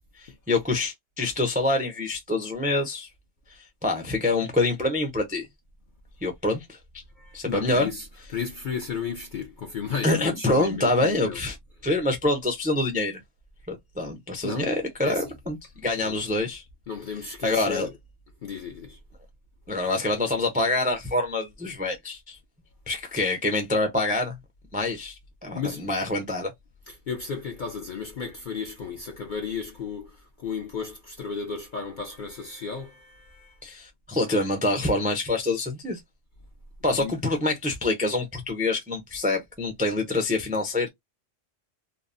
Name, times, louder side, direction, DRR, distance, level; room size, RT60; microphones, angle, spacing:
voice 1, 0.2-3.1 3.8-5.5 6.2-6.8 7.3-7.9 10.0-11.5 11.8-13.1 13.7-15.6 15.8-16.6 17.4-17.9 19.7-22.4 22.9-24.3 24.7-25.1 25.4-26.5 33.6-36.0 36.8-40.9, left 2 dB, 15° right, 0.3 m, -26 dB
voice 2, 7.2-8.1 8.3-11.4 14.4-14.7 15.0-15.3 16.0-16.2 16.9-17.9 18.4-19.0 25.5-25.9 26.9-33.6 36.9-37.2, left 6 dB, 55° left, 0.5 m, -34 dB
2.8 x 2.0 x 2.5 m
omnidirectional pair, 1.3 m